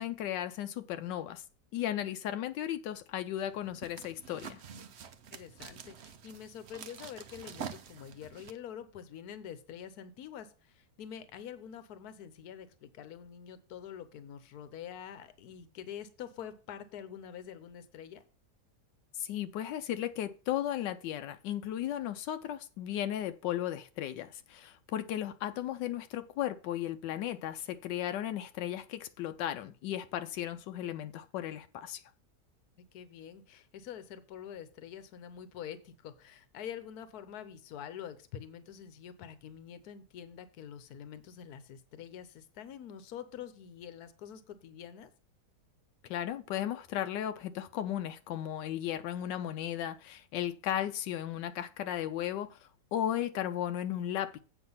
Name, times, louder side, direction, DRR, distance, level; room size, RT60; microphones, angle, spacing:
voice 1, 0.0-1.4 1.7-4.6 19.1-32.0 46.0-54.4, left 11 dB, 90° left, 1.2 m, -35 dB
sound 1, 3.4-8.5, right 7 dB, 60° right, 0.7 m, -47 dB
voice 2, 5.3-18.2 32.9-45.1, left 9 dB, 65° left, 1.3 m, -46 dB
8.1 x 5.5 x 5.5 m
omnidirectional pair, 1.9 m